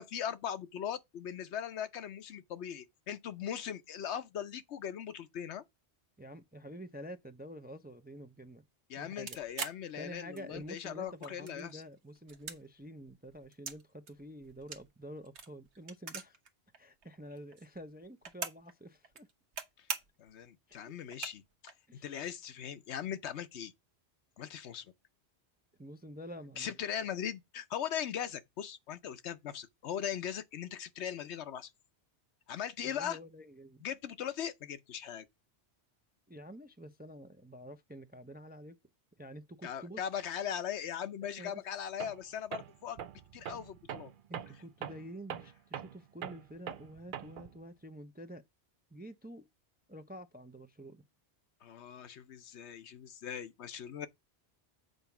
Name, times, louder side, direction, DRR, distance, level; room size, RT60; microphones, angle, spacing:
voice 1, 0.0-5.6 8.9-11.8 19.8-19.9 20.2-21.7 22.0-23.7 24.4-24.9 26.6-31.7 32.5-33.2 33.8-35.3 39.6-43.0 43.3-44.1 51.6-54.1, left 9 dB, 80° left, 1.0 m, -39 dB
voice 2, 6.2-8.6 9.0-9.4 10.0-16.4 16.8-19.3 20.7-20.9 21.9-22.1 25.8-26.7 32.8-33.8 36.3-38.8 39.2-40.0 41.3-41.6 44.3-48.4 48.9-49.4 49.9-51.0, equal, 15° right, 0.4 m, -48 dB
sound 1, 9.3-10.7 11.0-11.8 12.1-13.8 14.1-16.5 16.7-16.8 17.0-18.7 19.0-19.6 19.9-20.3 20.7-20.8 21.1-21.7, right 5 dB, 85° right, 1.4 m, -42 dB
Tools, 42.0-42.2 42.5-47.6, right 9 dB, 55° right, 0.7 m, -43 dB
8.0 x 4.1 x 5.8 m
omnidirectional pair, 1.1 m